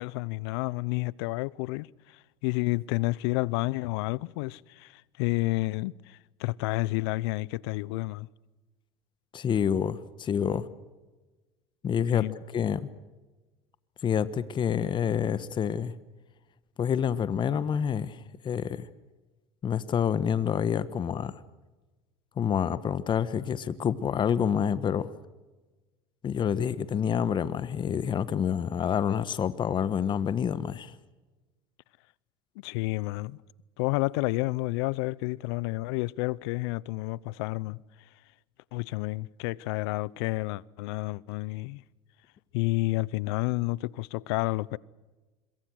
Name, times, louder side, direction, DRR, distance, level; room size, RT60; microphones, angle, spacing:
voice 1, 0.0-8.3 12.1-12.3 32.6-33.4 33.8-37.8 38.7-41.8 42.5-44.8, left 22 dB, 75° left, 0.7 m, -30 dB
voice 2, 9.3-10.7 11.8-12.2 12.5-12.9 14.0-15.9 16.8-18.9 19.6-21.3 22.4-25.1 26.2-30.9, left 8 dB, 35° left, 1.2 m, -28 dB
26.5 x 23.0 x 6.4 m
hypercardioid pair, 85°, 14 cm